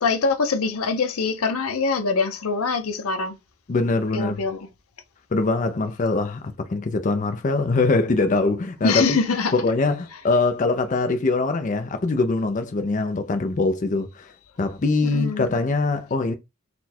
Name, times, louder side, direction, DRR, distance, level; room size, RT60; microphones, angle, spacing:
voice 1, 0.0-3.3 4.1-4.7 8.8-9.5 15.0-15.5, left 4 dB, 85° left, 0.7 m, -24 dB
voice 2, 3.7-4.4 5.3-9.2 9.6-14.3 14.6-16.3, left 3 dB, 35° left, 0.4 m, -23 dB
4.2 x 2.2 x 4.1 m
head